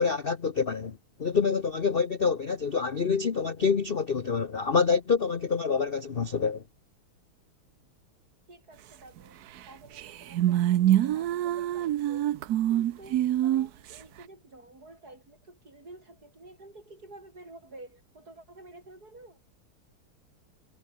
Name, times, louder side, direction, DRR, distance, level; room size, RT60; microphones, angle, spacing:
voice 1, 0.0-6.6, left 5 dB, 40° left, 0.8 m, -27 dB
voice 2, 8.5-12.3 12.7-19.4, right 2 dB, 40° right, 7.0 m, -50 dB
sound 1, 9.6-9.7 10.0-14.0, right 12 dB, 70° right, 0.9 m, -25 dB
omnidirectional pair, 2.4 m